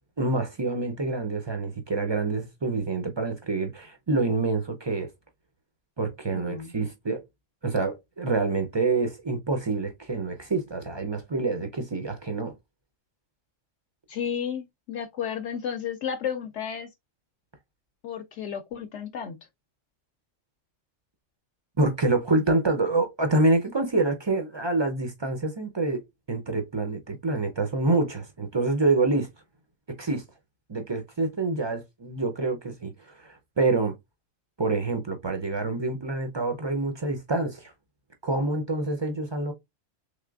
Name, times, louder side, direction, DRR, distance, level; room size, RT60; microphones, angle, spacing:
voice 1, 0.2-5.1 6.0-7.2 7.6-12.5 21.8-26.0 26.3-29.3 30.0-30.2 30.7-33.9 34.6-37.7 38.2-39.5, right 3 dB, 45° right, 0.3 m, -27 dB
voice 2, 6.3-6.7 14.1-16.9 18.0-19.4, left 8 dB, 70° left, 0.8 m, -32 dB
3.5 x 3.2 x 2.3 m
omnidirectional pair, 1.3 m